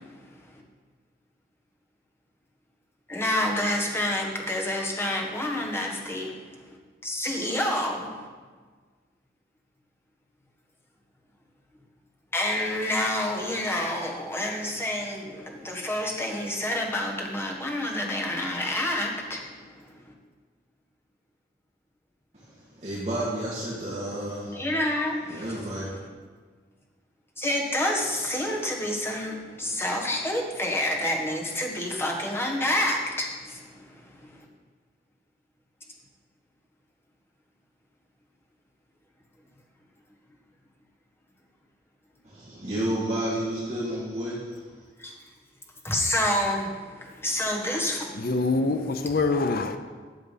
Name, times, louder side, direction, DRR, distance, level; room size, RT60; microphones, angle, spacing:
voice 1, 3.1-6.3 7.0-8.1 12.3-19.4 24.5-25.1 25.4-25.5 27.4-33.3 45.0-45.1 45.8-46.7 47.2-48.0, left 1 dB, 15° left, 1.5 m, -28 dB
voice 2, 22.3-24.6 25.3-25.8 42.2-44.6, right 1 dB, 35° right, 2.2 m, -31 dB
voice 3, 48.2-49.8, left 3 dB, 55° left, 0.6 m, -25 dB
12.0 x 7.4 x 5.6 m
head